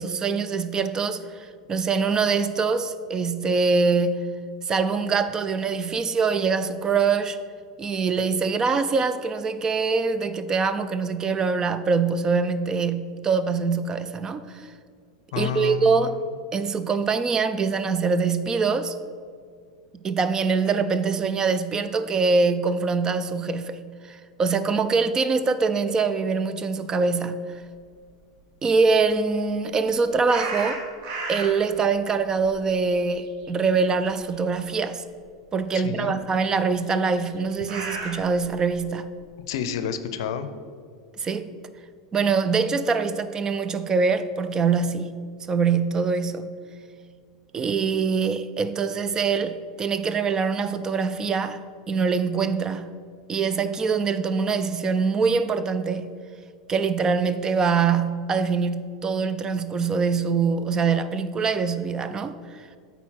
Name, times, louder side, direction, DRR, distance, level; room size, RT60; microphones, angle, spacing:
voice 1, 0.0-4.3 4.7-7.4 7.8-14.7 15.4-16.1 16.5-19.0 20.0-23.8 24.1-27.5 28.6-30.8 31.3-35.0 35.5-39.1 41.2-41.5 42.1-45.1 45.5-46.5 47.5-51.6 51.9-52.9 53.3-56.1 56.7-62.6, right 5 dB, 25° right, 12 dB, 0.4 m, -24 dB
voice 2, 15.3-16.1 35.7-36.1 39.5-40.5, left 9 dB, 60° left, 11 dB, 0.5 m, -29 dB
sound 1, 30.3-31.8 32.2-33.8 34.1-34.3 35.1-35.2 37.0-38.8, right 3 dB, 50° right, 1.4 m, -33 dB
8.3 x 4.2 x 5.6 m, 2.1 s
figure-of-eight pair, 90°, 3 cm